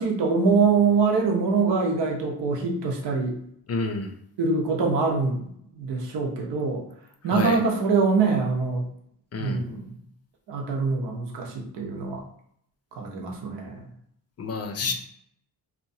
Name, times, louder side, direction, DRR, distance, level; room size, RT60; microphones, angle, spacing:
voice 1, 0.0-3.4 4.4-5.5 5.8-6.8 7.2-8.9 9.4-9.9 10.5-12.2 12.9-13.9 14.8-14.9, right 4 dB, 80° right, 1 dB, 0.8 m, -24 dB
voice 2, 3.7-4.1 7.2-7.6 9.3-9.6 14.4-14.9, left 4 dB, 40° left, 5 dB, 0.5 m, -29 dB
2.8 x 2.2 x 2.6 m, 0.69 s
cardioid pair, 110°, 41 cm